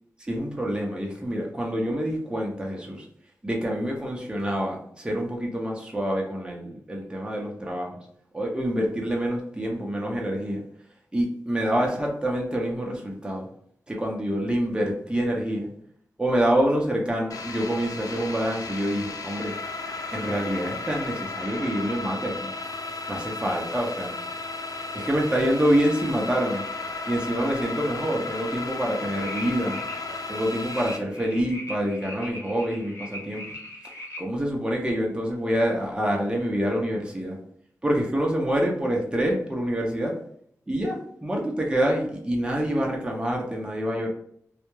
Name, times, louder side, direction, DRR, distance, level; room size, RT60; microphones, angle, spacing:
voice 1, 0.2-3.0 3.4-8.0 8.3-10.6 11.1-13.5 13.9-15.7 16.2-19.5 20.1-22.5 23.1-24.1 24.9-26.6 27.1-29.8 30.3-33.4 34.2-37.4 37.8-40.2 40.7-44.1, equal, 15° right, -1 dB, 0.6 m, -26 dB
sound 1, 17.3-31.0, left 3 dB, 70° left, 0.3 m, -34 dB
sound 2, 29.1-34.2, left 1 dB, 55° left, 0.8 m, -40 dB
2.2 x 2.0 x 3.0 m, 0.65 s
wide cardioid pair, 65°, 6 cm